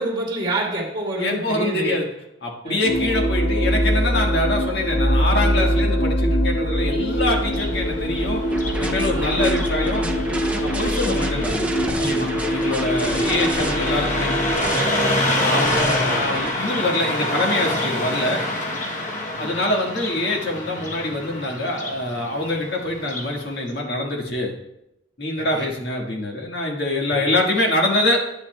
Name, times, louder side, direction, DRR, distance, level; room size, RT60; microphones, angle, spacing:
voice 1, 0.0-2.0 2.6-2.8 9.1-9.3 12.9-13.2 15.4-15.7 19.3-19.5 25.4-25.7 27.1-27.2, right 1 dB, 25° right, 0 dB, 2.5 m, -28 dB
voice 2, 1.2-2.1 2.4-8.4 8.8-10.0 10.6-14.3 15.4-18.4 19.4-24.5 25.2-28.2, left 1 dB, 60° left, 0 dB, 1.6 m, -24 dB
sound 1, 2.8-14.5, equal, 85° left, 1.6 m, -23 dB
Car passing by, 7.4-23.4, left 1 dB, 40° left, 0.9 m, -27 dB
sound 2, 8.5-16.5, right 1 dB, 5° right, 0.4 m, -31 dB
10.5 x 9.7 x 2.2 m, 0.85 s
head